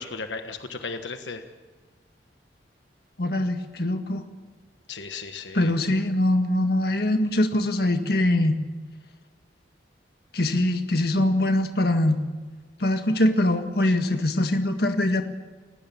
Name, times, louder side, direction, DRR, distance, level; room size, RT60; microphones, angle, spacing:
voice 1, 0.0-1.4 4.9-5.7 13.8-13.9, left 4 dB, 80° left, 6 dB, 1.4 m, -35 dB
voice 2, 3.2-4.2 5.5-8.6 10.3-12.2 12.8-15.2, left 1 dB, 55° left, 6 dB, 1.8 m, -23 dB
30.0 x 16.5 x 7.1 m, 1.4 s
head